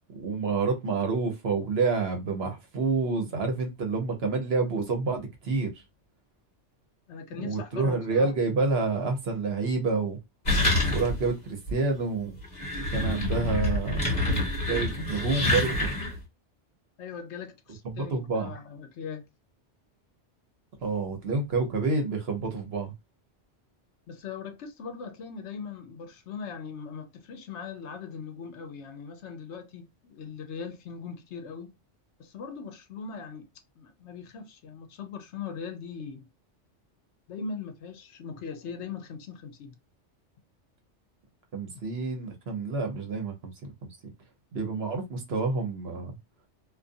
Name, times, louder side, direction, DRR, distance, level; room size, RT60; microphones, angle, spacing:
voice 1, 0.1-5.8 7.4-10.2 10.9-12.3 12.9-14.1 14.6-15.9 17.8-18.5 20.8-22.9 41.5-43.3 43.6-43.9 44.5-46.1, right 4 dB, 60° right, 1.1 m, -28 dB
voice 2, 7.1-8.3 17.0-19.2 24.1-31.8 32.2-33.4 33.8-36.3 37.3-39.7, left 6 dB, 70° left, 0.9 m, -40 dB
sound 1, 10.5-11.3 11.7-11.8 12.4-16.2, left 1 dB, 40° left, 1.2 m, -27 dB
2.6 x 2.5 x 2.5 m
omnidirectional pair, 1.2 m